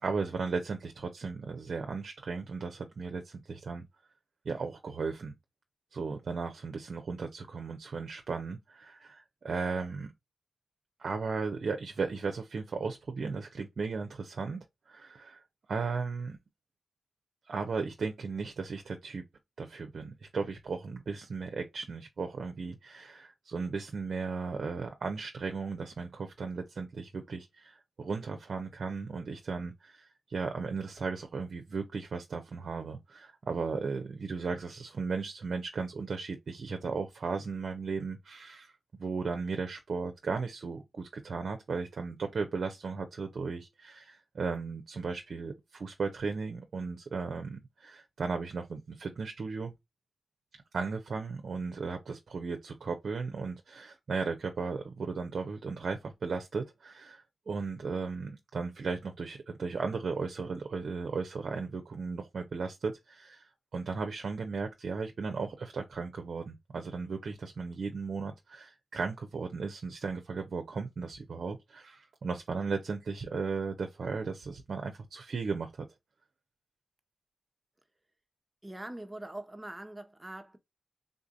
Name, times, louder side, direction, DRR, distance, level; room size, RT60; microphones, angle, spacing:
voice 1, 0.0-3.9 4.4-5.3 5.9-10.1 11.0-14.6 14.9-15.4 15.7-16.4 17.5-19.2 19.6-49.7 50.7-75.9, right 4 dB, 70° right, 0.6 m, -36 dB
voice 2, 78.6-80.6, right 1 dB, 25° right, 0.8 m, -43 dB
3.7 x 2.6 x 2.4 m
cardioid pair, 40°, 0 cm